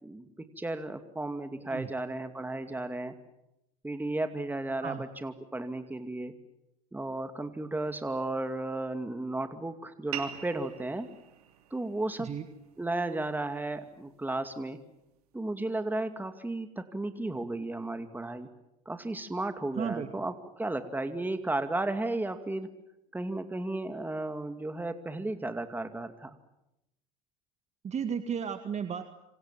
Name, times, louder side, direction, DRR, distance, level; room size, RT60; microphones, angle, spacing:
voice 1, 0.0-3.1 3.8-6.3 6.9-11.1 11.7-12.3 12.8-14.8 15.3-18.5 18.9-22.7 23.1-26.3, right 2 dB, 10° right, 8 dB, 2.4 m, -34 dB
sound 1, 10.1-15.2, right 10 dB, 85° right, 2.9 m, -46 dB
voice 2, 19.8-20.1 27.8-29.1, right 7 dB, 35° right, 8 dB, 1.9 m, -34 dB
27.0 x 26.5 x 7.5 m, 0.86 s
hypercardioid pair, 75°, 19 cm